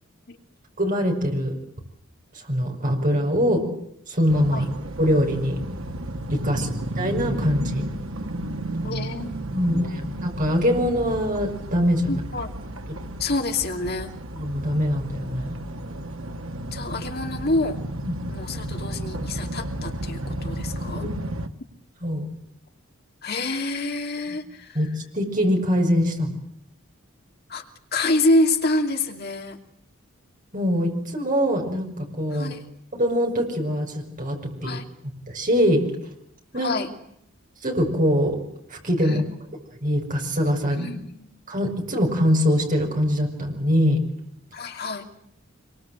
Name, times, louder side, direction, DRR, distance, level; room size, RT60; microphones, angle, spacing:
voice 1, 0.8-1.6 2.5-3.7 4.1-4.6 5.0-5.6 6.3-6.7 7.0-7.9 9.5-12.2 14.3-15.6 18.0-18.2 21.0-21.1 22.0-22.2 24.7-24.9 25.1-26.3 30.5-32.5 32.9-34.8 35.3-35.8 36.5-36.7 37.6-38.4 38.7-39.2 39.8-40.9 41.5-44.0, equal, 40° right, 2 dB, 6.8 m, -23 dB
sound 1, 4.3-21.5, right 1 dB, 75° right, 1.9 m, -33 dB
voice 2, 8.8-9.3 9.7-10.0 12.1-12.5 13.2-14.1 16.7-17.8 18.3-21.1 23.2-24.9 27.5-27.7 27.9-29.6 32.3-32.6 34.6-34.8 36.6-36.9 39.0-39.3 40.8-41.3 44.5-45.0, left 2 dB, 50° left, 4 dB, 2.7 m, -27 dB
26.0 x 24.0 x 8.0 m, 0.75 s
head